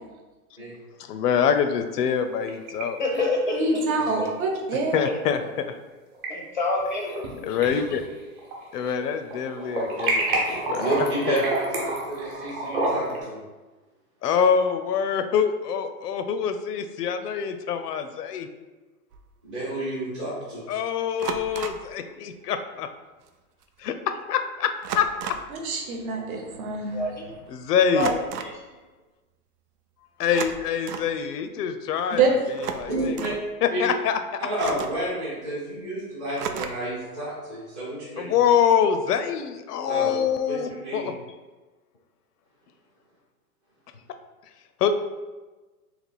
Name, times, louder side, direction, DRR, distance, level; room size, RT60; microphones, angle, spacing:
voice 1, 1.0-3.0 4.9-5.7 7.4-8.0 8.7-10.9 11.3-11.4 14.2-18.5 20.7-22.9 23.8-25.1 27.5-28.1 30.2-32.2 32.5-33.3 33.6-34.4 38.2-41.1 44.8-44.9, left 7 dB, 85° left, 8 dB, 0.6 m, -25 dB
sound 1, 2.1-2.8 3.1-3.2 4.8-4.9 5.9-6.3 6.8-7.3 7.6-9.0 9.3-13.2, right 2 dB, 35° right, 0.9 m, -28 dB
voice 2, 3.0-3.8 4.2-4.3 5.0-5.2 6.3-7.1 26.9-27.3 27.9-28.8, left 2 dB, 35° left, -1 dB, 0.4 m, -27 dB
voice 3, 3.5-4.9 25.5-27.0 32.1-32.3 32.9-33.1, right 3 dB, 65° right, 2 dB, 1.0 m, -25 dB
voice 4, 10.8-13.4 19.4-20.6 32.9-33.3 33.7-33.8 34.4-38.3 39.9-40.2 40.5-40.6 40.8-41.1, right 1 dB, 20° right, -12 dB, 0.5 m, -30 dB
sound 2, 19.1-19.3 21.2-21.9 23.3-23.4 23.6-23.9 24.8-25.6 28.0-28.6 30.2-31.1 32.5-33.4 34.6-35.1 36.4-37.0, right 7 dB, 80° right, 0.6 m, -34 dB
3.2 x 3.0 x 4.0 m, 1.2 s
hypercardioid pair, 170°, 46 cm